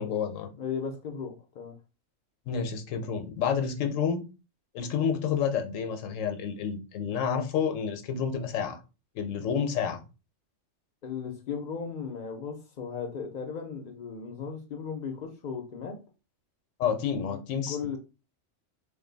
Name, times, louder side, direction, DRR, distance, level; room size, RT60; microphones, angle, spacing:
voice 1, 0.0-0.5 2.5-4.2 4.7-8.8 9.1-10.0 16.8-18.0, left 7 dB, 80° left, 6 dB, 1.0 m, -29 dB
voice 2, 0.6-1.8 11.0-16.0 17.3-17.4 17.7-18.0, left 6 dB, 55° left, 3 dB, 0.6 m, -36 dB
2.5 x 2.3 x 3.8 m, 0.30 s
omnidirectional pair, 1.3 m